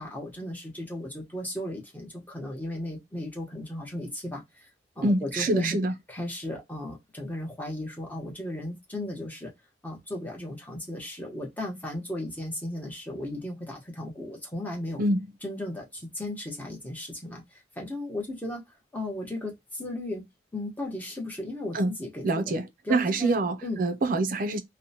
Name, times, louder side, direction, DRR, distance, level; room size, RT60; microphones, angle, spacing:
voice 1, 0.0-4.7 5.0-5.8 6.1-9.5 9.8-15.0 15.4-18.6 18.9-20.2 20.5-22.6 22.8-23.8, left 1 dB, 10° left, 0.9 m, -36 dB
voice 2, 5.0-5.9 15.0-15.3 21.7-22.0 22.2-24.6, right 2 dB, 50° right, 0.4 m, -26 dB
2.8 x 2.1 x 2.7 m
head